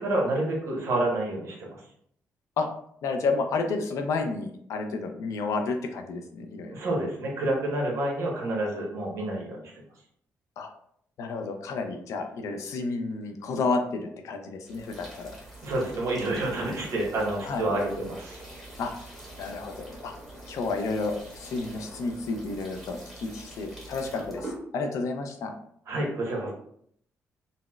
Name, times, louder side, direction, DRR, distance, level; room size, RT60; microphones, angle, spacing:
voice 1, 0.0-1.8 6.7-9.6 15.6-18.4 25.9-26.5, right 1 dB, 65° right, -1 dB, 1.0 m, -28 dB
voice 2, 3.0-6.8 10.6-10.7 11.2-15.4 17.4-17.6 18.8-18.9 19.4-20.1 20.5-25.5, left 3 dB, 75° left, 5 dB, 0.5 m, -31 dB
sound 1, 14.6-24.6, right 1 dB, 5° right, 1.2 m, -45 dB
3.9 x 2.0 x 2.3 m, 0.67 s
cardioid pair, 100°, 5 cm